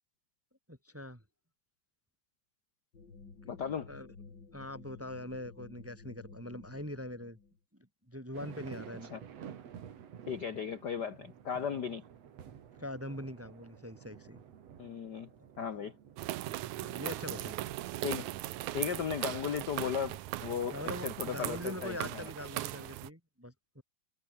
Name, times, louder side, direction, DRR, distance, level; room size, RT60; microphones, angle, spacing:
voice 1, 0.7-1.2 3.4-3.5 3.9-4.1 4.5-7.4 8.1-9.2 12.8-14.4 15.5-15.8 16.5-17.6 20.7-23.8, left 1 dB, 5° right, 1.7 m, -43 dB
sound 1, 2.9-7.6, left 4 dB, 35° left, 3.8 m, -53 dB
voice 2, 3.5-3.9 9.1-9.2 10.3-12.0 14.8-15.3 15.6-15.9 18.0-18.3 18.7-22.3, left 7 dB, 55° left, 1.2 m, -36 dB
sound 2, 8.3-21.1, right 8 dB, 60° right, 2.9 m, -52 dB
sound 3, 16.2-23.1, right 15 dB, 75° right, 2.3 m, -38 dB
omnidirectional pair, 3.5 m